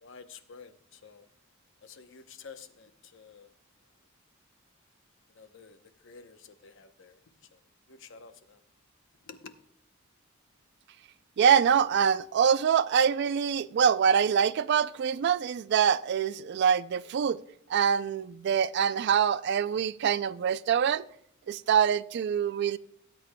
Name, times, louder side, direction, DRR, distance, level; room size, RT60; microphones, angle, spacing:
voice 1, 0.0-1.3 1.8-3.5 5.3-5.8 6.0-7.2 7.5-7.6 7.9-8.6 9.3-9.5, left 5 dB, 65° left, 0.8 m, -50 dB
voice 2, 11.4-17.4 17.7-21.1 21.5-22.8, right 7 dB, 55° right, 0.3 m, -25 dB
17.5 x 8.3 x 2.2 m
head